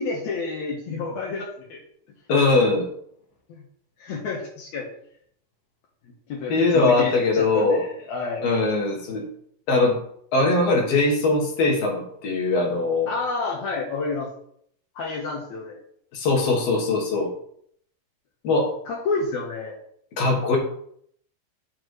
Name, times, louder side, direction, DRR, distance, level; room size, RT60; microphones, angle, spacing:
voice 1, 0.0-1.8 3.5-3.6 4.0-4.9 6.3-8.4 13.1-14.3 15.0-15.8 18.9-19.8, left 4 dB, 80° left, -2 dB, 1.6 m, -29 dB
voice 2, 2.3-2.9 6.5-7.9 8.4-9.3 9.7-10.0 10.3-13.1 16.1-17.3 18.4-18.7 20.2-20.6, left 3 dB, 60° left, 0 dB, 1.8 m, -21 dB
11.5 x 4.0 x 3.2 m, 0.67 s
omnidirectional pair, 4.8 m